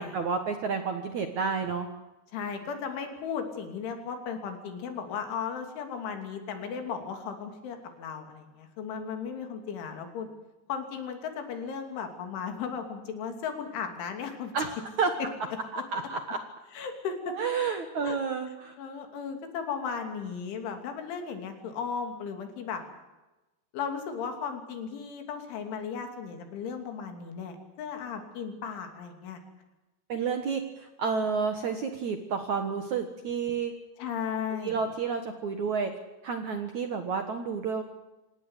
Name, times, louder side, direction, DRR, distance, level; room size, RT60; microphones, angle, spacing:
voice 1, 0.0-1.9 14.5-15.1 15.7-16.4 17.3-18.7 30.1-33.7 34.6-35.9 36.2-37.8, right 5 dB, 60° right, 7 dB, 2.0 m, -30 dB
voice 2, 2.3-10.3 10.7-14.5 16.7-17.4 18.0-18.2 18.8-22.8 23.7-29.4 34.0-34.8, left 6 dB, 85° left, 6 dB, 5.3 m, -36 dB
26.5 x 17.5 x 8.2 m, 1.1 s
omnidirectional pair, 5.3 m